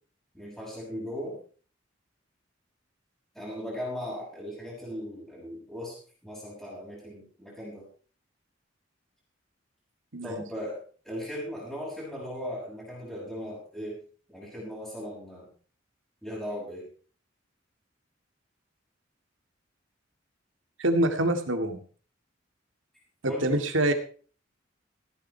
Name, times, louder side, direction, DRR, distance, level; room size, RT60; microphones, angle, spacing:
voice 1, 0.3-1.4 3.3-6.0 6.2-7.9 10.2-10.8 11.0-14.0 14.3-15.5 16.2-16.9 23.3-23.6, equal, ahead, -6 dB, 7.1 m, -37 dB
voice 2, 20.8-21.8 23.2-23.9, right 1 dB, 80° right, 6 dB, 2.1 m, -25 dB
16.0 x 11.0 x 4.6 m, 0.42 s
head